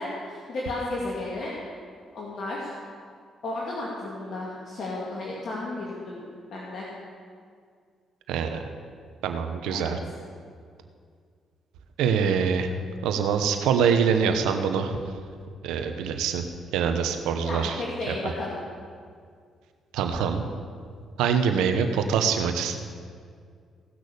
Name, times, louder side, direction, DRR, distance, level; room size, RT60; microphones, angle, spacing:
voice 1, 0.0-1.5 2.1-2.7 3.4-6.2 6.5-6.9 9.7-9.9 17.4-18.6, left 2 dB, 65° left, -5 dB, 2.2 m, -33 dB
voice 2, 8.3-8.6 9.2-10.0 12.0-12.7 13.0-15.0 15.6-16.4 16.7-18.1 19.9-20.4 21.2-22.8, right 7 dB, 85° right, 6 dB, 1.0 m, -24 dB
17.5 x 6.3 x 6.8 m, 2.1 s
supercardioid pair, 60°, 0 cm